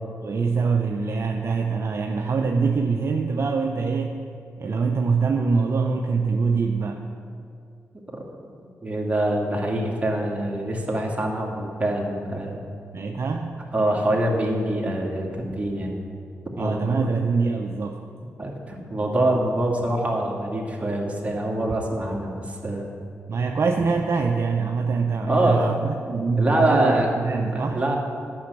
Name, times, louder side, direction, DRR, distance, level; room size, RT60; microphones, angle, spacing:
voice 1, 0.2-4.2 4.6-7.0 12.9-13.6 16.6-18.0 23.3-27.8, right 4 dB, 55° right, 3 dB, 0.7 m, -24 dB
voice 2, 8.8-12.6 13.7-16.0 16.6-17.1 18.4-22.9 25.3-25.7 26.4-27.1 27.5-28.0, right 1 dB, 25° right, -2 dB, 2.3 m, -24 dB
10.0 x 6.2 x 8.2 m, 2.4 s
cardioid pair, 55°, 5 cm